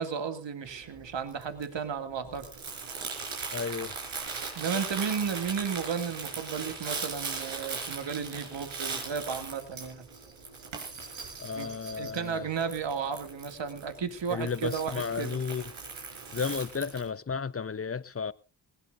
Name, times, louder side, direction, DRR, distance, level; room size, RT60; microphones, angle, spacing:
voice 1, 0.0-2.5 4.6-10.1 11.6-11.7 12.0-15.4, right 6 dB, 65° right, 2.5 m, -33 dB
Crumpling crinkling, 0.6-17.1, right 4 dB, 85° right, 5.4 m, -39 dB
voice 2, 3.5-3.9 11.4-12.5 14.3-15.7 16.3-18.3, left 5 dB, 30° left, 1.0 m, -33 dB
20.0 x 17.5 x 2.6 m
supercardioid pair, 45°, 47 cm